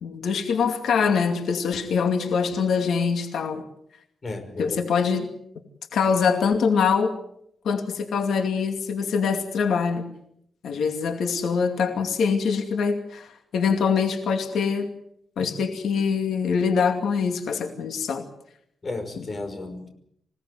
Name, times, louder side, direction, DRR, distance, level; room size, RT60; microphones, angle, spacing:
voice 1, 0.0-3.6 4.6-5.3 5.9-7.2 7.6-10.0 10.6-14.9 15.4-18.3, left 6 dB, 90° left, 5 dB, 2.5 m, -24 dB
voice 2, 4.2-4.8 18.8-19.9, left 2 dB, 35° left, 6 dB, 5.6 m, -33 dB
26.5 x 18.0 x 7.9 m, 0.72 s
wide cardioid pair, 125°, 0 cm